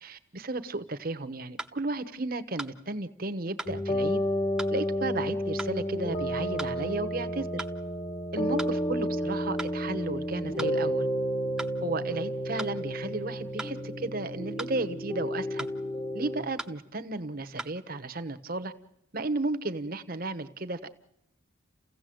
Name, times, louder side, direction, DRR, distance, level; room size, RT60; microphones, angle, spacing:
voice 1, 0.0-4.2 4.7-7.6 8.3-11.1 11.8-15.7 16.1-18.7 19.1-20.9, right 2 dB, 45° right, 11 dB, 1.0 m, -34 dB
sound 1, 1.6-1.8 2.6-2.8 3.6-3.8 4.6-4.8 5.6-5.8 6.6-6.8 7.6-7.8 8.6-8.8 9.6-9.8 10.6-10.8 11.6-11.8 12.6-12.8 13.6-13.8 14.6-14.8 15.6-15.8 16.6-16.8 17.6-17.8, right 1 dB, 5° right, 0.8 m, -38 dB
sound 2, 3.7-16.4, equal, 25° left, 1.1 m, -31 dB
30.0 x 16.0 x 7.8 m, 0.85 s
head